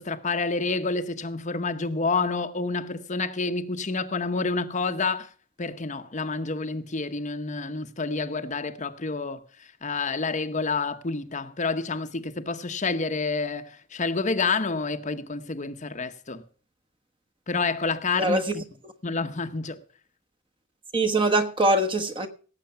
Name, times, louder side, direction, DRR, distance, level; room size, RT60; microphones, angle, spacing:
voice 1, 0.0-5.3 5.6-16.4 17.5-18.6 19.0-19.8, left 4 dB, 35° left, 0.9 m, -29 dB
voice 2, 20.9-22.3, right 2 dB, 25° right, 1.2 m, -22 dB
17.5 x 7.7 x 5.8 m
head